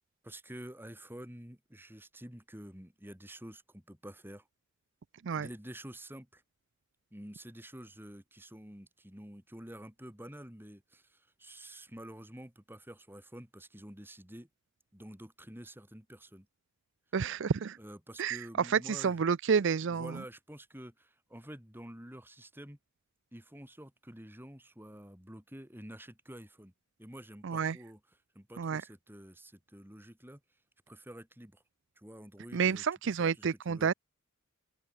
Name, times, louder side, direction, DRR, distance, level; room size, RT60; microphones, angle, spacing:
voice 1, 0.2-4.5 5.3-6.4 7.1-14.5 14.9-16.5 17.8-19.2 19.9-22.8 23.3-26.7 27.0-28.0 28.4-30.4 30.9-31.6 32.0-33.9, right 1 dB, 10° right, 3.6 m, -49 dB
voice 2, 17.1-17.8 18.2-20.1 27.4-27.8 28.6-28.8 32.5-33.9, right 6 dB, 60° right, 0.5 m, -29 dB
open air
head